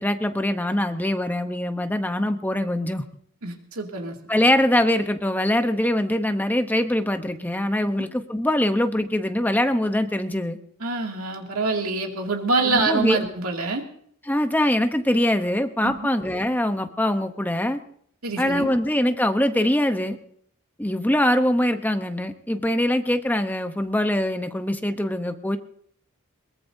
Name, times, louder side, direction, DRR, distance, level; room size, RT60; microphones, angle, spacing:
voice 1, 0.0-3.0 4.3-10.6 12.6-13.2 14.3-17.8 18.4-20.2 20.8-25.6, left 1 dB, 10° left, 7 dB, 0.9 m, -23 dB
voice 2, 3.4-4.2 10.8-13.8 15.8-16.0 18.2-18.7, right 3 dB, 90° right, 1 dB, 2.4 m, -25 dB
22.0 x 19.5 x 2.7 m, 0.65 s
head